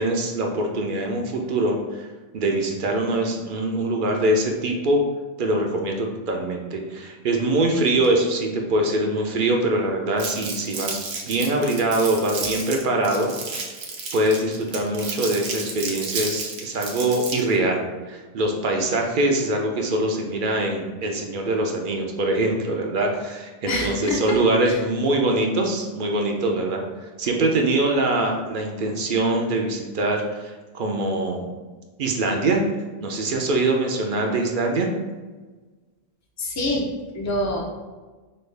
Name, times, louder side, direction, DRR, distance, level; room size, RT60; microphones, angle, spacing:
voice 1, 0.0-2.1 2.3-5.0 5.4-11.0 11.3-13.3 13.6-13.7 14.1-26.8 27.2-31.5 32.0-32.6 33.0-34.9, right 2 dB, 55° right, 2 dB, 0.6 m, -23 dB
Crumpling crinkling, 10.2-17.6, right 4 dB, 85° right, 1.1 m, -32 dB
voice 2, 23.7-24.4 24.7-24.8 36.4-36.9 37.1-37.6, left 1 dB, 25° left, -1 dB, 0.4 m, -25 dB
5.3 x 2.3 x 3.3 m, 1.3 s
omnidirectional pair, 1.2 m